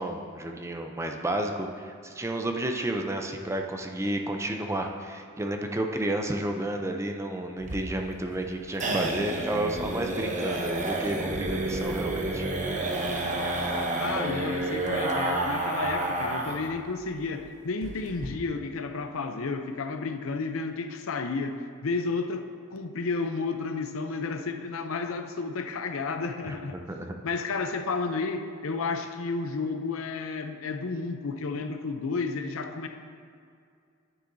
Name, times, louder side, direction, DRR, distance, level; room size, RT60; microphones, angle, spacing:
voice 1, 0.0-12.4 26.4-27.2, right 1 dB, 15° right, 4 dB, 0.5 m, -31 dB
sound 1, 7.6-16.7 17.0-17.1 17.4-17.5 17.8-18.3, right 2 dB, 35° right, 0.8 m, -30 dB
voice 2, 14.0-22.4 22.7-26.8 27.2-32.9, left 4 dB, 70° left, 7 dB, 0.6 m, -32 dB
10.0 x 9.6 x 2.7 m, 2.3 s
head